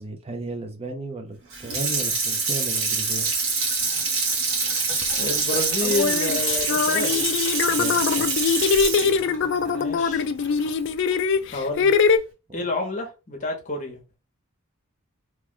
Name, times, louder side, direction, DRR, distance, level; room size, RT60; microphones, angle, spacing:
voice 1, 0.0-3.3 7.7-8.4, right 2 dB, 25° right, 0.6 m, -34 dB
Water tap faucet / Sink (filling or washing), 1.5-10.7 11.1-11.2, right 4 dB, 65° right, 1.3 m, -25 dB
sound 1, 5.0-5.1 5.8-12.2, left 5 dB, 55° left, 0.3 m, -22 dB
voice 2, 5.1-7.2 9.7-10.3 11.5-11.9 12.5-14.0, left 2 dB, 35° left, 1.0 m, -29 dB
3.1 x 2.3 x 3.7 m
head